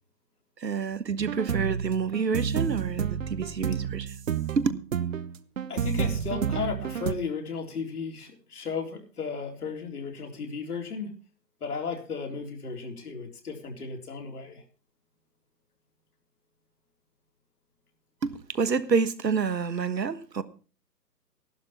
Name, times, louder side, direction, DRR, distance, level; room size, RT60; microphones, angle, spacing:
voice 1, 0.6-4.1 4.6-4.7 18.2-20.4, right 5 dB, 80° right, 1.5 m, -28 dB
sound 1, 1.2-7.1, right 7 dB, 50° right, 1.0 m, -30 dB
voice 2, 5.7-11.1 11.6-14.6, left 5 dB, 65° left, 4.0 m, -34 dB
14.5 x 12.0 x 4.3 m
figure-of-eight pair, 140°, 49 cm